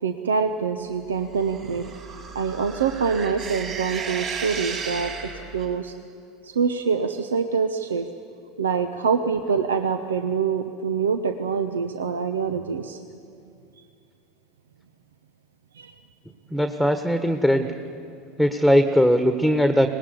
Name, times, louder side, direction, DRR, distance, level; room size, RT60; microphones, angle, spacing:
voice 1, 0.0-1.9 2.3-5.9 6.4-8.1 8.6-13.0 15.8-15.9, right 6 dB, 80° right, 8 dB, 0.9 m, -25 dB
sound 1, 1.4-5.7, right 5 dB, 40° right, 6.6 m, -34 dB
voice 2, 16.5-17.7 18.4-19.9, equal, 5° right, 7 dB, 1.5 m, -19 dB
24.5 x 19.5 x 9.9 m, 2.5 s
hypercardioid pair, 75°, 0 cm